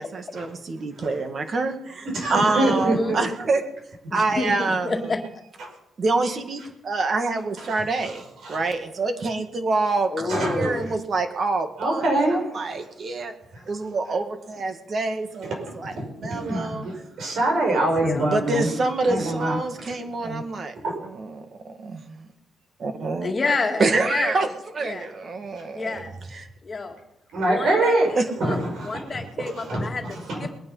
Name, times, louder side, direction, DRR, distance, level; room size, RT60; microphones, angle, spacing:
voice 1, 0.0-3.7 4.1-5.1 6.0-13.3 13.6-16.9 18.2-22.3 22.8-23.3 23.8-24.5 24.7-26.5 28.2-28.3, right 3 dB, 40° right, 7 dB, 1.9 m, -27 dB
voice 2, 2.1-3.3 7.7-7.8 8.4-8.6 10.3-10.8 11.8-12.6 13.5-13.6 15.7-18.7 19.0-19.6 20.2-20.4 20.8-21.0 27.3-28.1 28.4-30.5, right 1 dB, 65° right, 2 dB, 5.4 m, -25 dB
voice 3, 2.7-3.2 4.1-5.2 10.1-10.9 18.0-18.4 23.2-24.4 24.8-25.1 25.7-26.2 26.6-26.9 27.4-28.6 28.8-30.1 30.4-30.5, left 3 dB, 30° left, 4 dB, 2.1 m, -29 dB
21.0 x 9.4 x 5.6 m, 0.83 s
cardioid pair, 125°, 0 cm